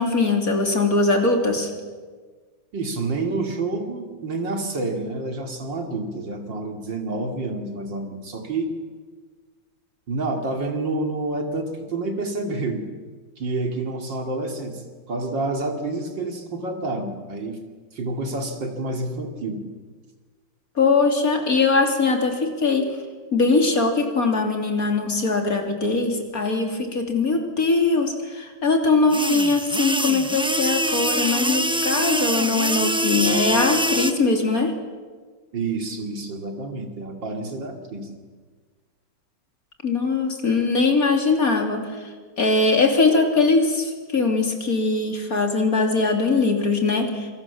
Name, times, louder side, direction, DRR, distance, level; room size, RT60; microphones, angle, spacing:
voice 1, 0.0-1.7 20.8-22.9 23.3-34.7 39.8-42.1 42.4-47.3, left 3 dB, 45° left, 3 dB, 3.5 m, -21 dB
voice 2, 2.7-8.7 10.1-12.9 13.4-17.6 17.9-19.6 35.5-38.1, right 2 dB, 65° right, 4 dB, 3.3 m, -28 dB
sound 1, 29.1-34.1, right 1 dB, 5° right, 0.5 m, -24 dB
27.0 x 25.5 x 7.2 m, 1.5 s
omnidirectional pair, 2.1 m